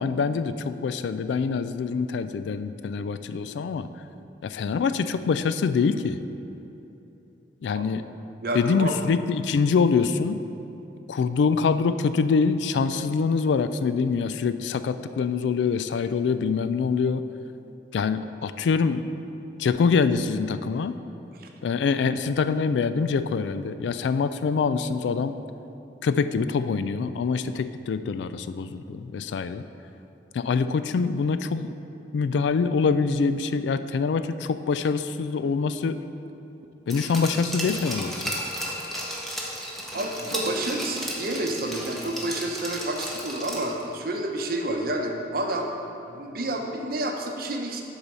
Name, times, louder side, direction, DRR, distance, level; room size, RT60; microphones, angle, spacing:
voice 1, 0.0-3.9 4.4-6.2 7.6-8.0 8.5-10.4 11.1-17.2 17.9-19.1 19.6-21.0 21.6-25.4 26.0-29.6 30.3-31.7 32.1-36.0 36.9-38.1, left 5 dB, 75° left, 11 dB, 0.3 m, -25 dB
voice 2, 8.4-8.9 21.4-21.5 39.9-45.7 46.1-47.8, right 1 dB, 55° right, 3 dB, 0.7 m, -29 dB
Glass, 36.9-43.8 44.2-44.3, equal, ahead, 0.9 m, -34 dB
8.4 x 4.1 x 6.0 m, 3.0 s
head